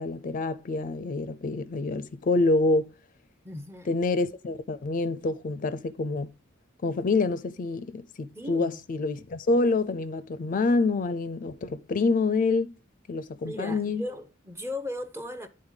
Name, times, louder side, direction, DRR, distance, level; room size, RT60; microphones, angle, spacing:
voice 1, 0.0-2.9 3.9-6.3 6.8-12.7 13.1-14.0, left 3 dB, 40° left, 0.4 m, -27 dB
voice 2, 3.4-3.9 8.3-8.8 13.4-15.5, left 1 dB, 15° right, 0.6 m, -37 dB
9.6 x 3.8 x 3.7 m
head